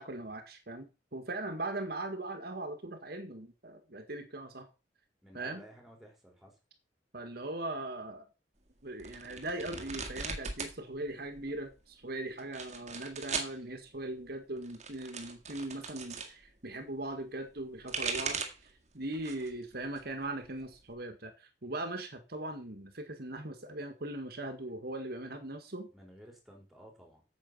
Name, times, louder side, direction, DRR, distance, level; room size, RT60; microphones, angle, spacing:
voice 1, 0.0-4.7 5.3-5.6 7.1-8.3 8.8-25.9, right 2 dB, 60° right, 6 dB, 1.8 m, -40 dB
voice 2, 5.2-6.6 25.9-27.2, equal, ahead, 0 dB, 4.3 m, -55 dB
sound 1, 9.0-10.8 11.1-11.7 12.4-13.5 14.6-16.3 17.6-18.7 19.1-19.6 20.0-20.9, right 5 dB, 40° right, 1.8 m, -39 dB
9.1 x 7.7 x 5.7 m, 0.29 s
head